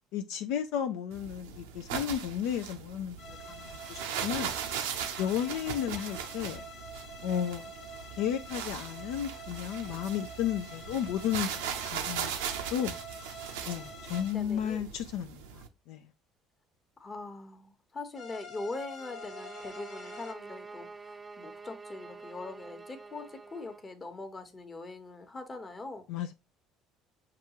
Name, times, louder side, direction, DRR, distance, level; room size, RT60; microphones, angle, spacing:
voice 1, 0.1-4.5 5.2-6.6 7.2-7.7 8.2-12.3 12.7-13.0 13.6-16.1 26.1-26.3, left 9 dB, 75° left, 0.4 m, -33 dB
sound 1, 1.1-15.7, right 8 dB, 90° right, 0.6 m, -39 dB
sound 2, 3.2-14.3 18.2-20.3, equal, 55° left, 1.1 m, -47 dB
voice 2, 14.3-14.9 17.0-26.1, left 2 dB, 30° left, 1.0 m, -42 dB
sound 3, 19.0-23.9, right 4 dB, 20° right, 0.4 m, -47 dB
5.9 x 2.4 x 2.8 m
supercardioid pair, 80°, 0 cm